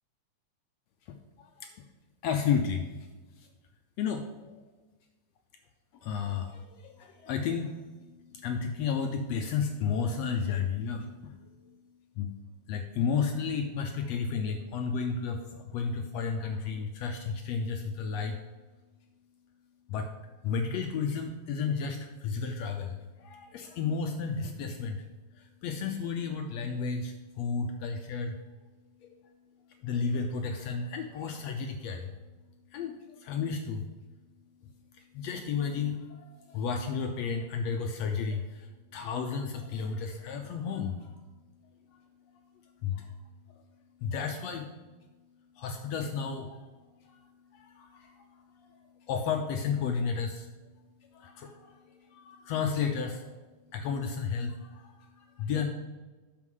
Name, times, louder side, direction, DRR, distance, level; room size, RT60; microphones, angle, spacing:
voice 1, 1.1-1.7 2.2-2.9 3.4-3.5 4.0-4.6 6.0-11.8 12.2-12.3 12.7-18.4 19.9-20.1 20.4-25.0 25.3-28.4 29.0-29.1 29.8-32.1 32.7-33.9 34.9-41.2 42.8-43.1 43.5-43.6 44.0-44.7 45.5-46.7 47.0-50.5 51.0-53.4 53.7-55.7, left 6 dB, 80° left, 5 dB, 1.5 m, -33 dB
9.6 x 6.8 x 5.5 m, 1.2 s
omnidirectional pair, 3.7 m